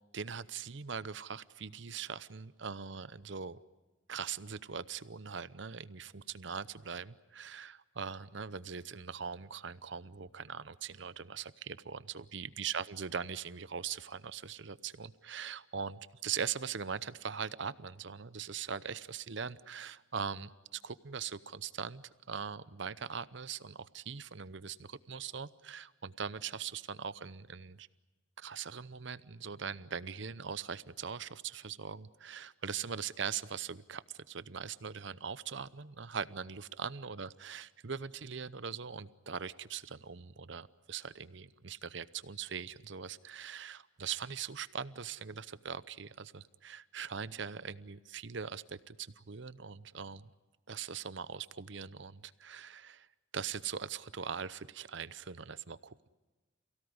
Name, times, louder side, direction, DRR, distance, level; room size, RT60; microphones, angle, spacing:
voice 1, 0.1-3.6 4.1-27.9 28.4-50.3 50.7-53.1 53.3-56.1, right 6 dB, 60° right, 17 dB, 0.8 m, -41 dB
28.5 x 17.0 x 9.6 m, 1.2 s
head